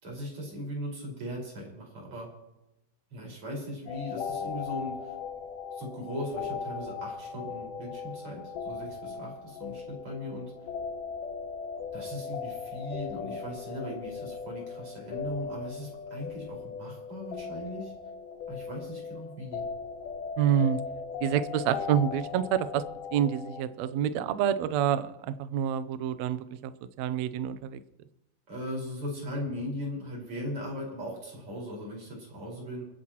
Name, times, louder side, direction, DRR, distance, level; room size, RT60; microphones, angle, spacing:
voice 1, 0.0-2.3 3.1-5.2 5.7-10.5 11.9-17.9 18.5-19.7 28.5-32.8, equal, 40° right, -2 dB, 5.9 m, -38 dB
sound 1, 3.9-23.6, left 6 dB, 75° left, 2.6 m, -38 dB
voice 2, 20.4-20.8 21.2-22.8 23.1-26.7 27.0-27.8, right 9 dB, 75° right, 12 dB, 1.7 m, -27 dB
29.0 x 10.0 x 3.0 m, 0.92 s
omnidirectional pair, 3.9 m